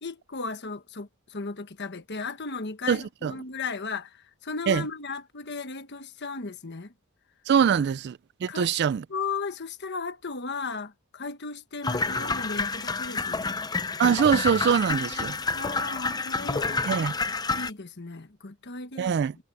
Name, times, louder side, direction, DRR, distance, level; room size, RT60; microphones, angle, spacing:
voice 1, 0.0-6.9 8.5-8.8 9.1-13.6 15.5-16.9 17.5-19.2, left 4 dB, 50° left, 1.3 m, -36 dB
voice 2, 2.9-3.3 4.7-4.8 7.5-9.0 14.0-15.4 16.9-17.1 19.0-19.4, right 7 dB, 50° right, 0.3 m, -23 dB
sound 1, 11.8-17.7, left 3 dB, 20° left, 0.6 m, -29 dB
head